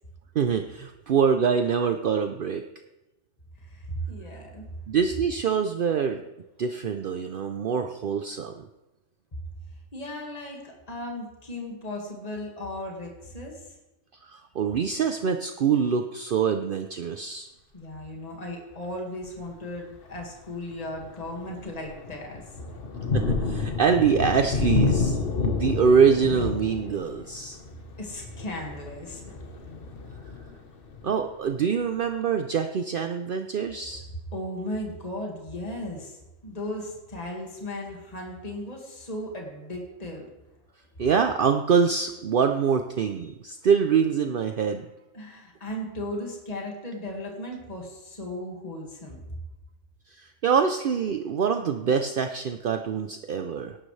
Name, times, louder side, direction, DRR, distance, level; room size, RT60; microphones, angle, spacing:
voice 1, 0.3-2.6 4.9-6.2 6.6-8.6 14.3-17.5 23.1-27.6 31.0-34.1 41.0-44.9 50.2-53.8, right 6 dB, 55° right, 7 dB, 0.7 m, -24 dB
voice 2, 3.6-4.7 9.3-9.4 9.9-13.6 17.7-22.4 28.0-29.4 29.8-29.9 33.8-33.9 34.3-36.2 36.4-40.3 45.1-49.4, left 1 dB, 35° left, 0 dB, 2.1 m, -36 dB
Thunder, 19.2-19.6 20.1-20.3 20.7-31.3, left 4 dB, 55° left, 1.4 m, -30 dB
17.5 x 11.5 x 3.3 m, 1.0 s
omnidirectional pair, 1.2 m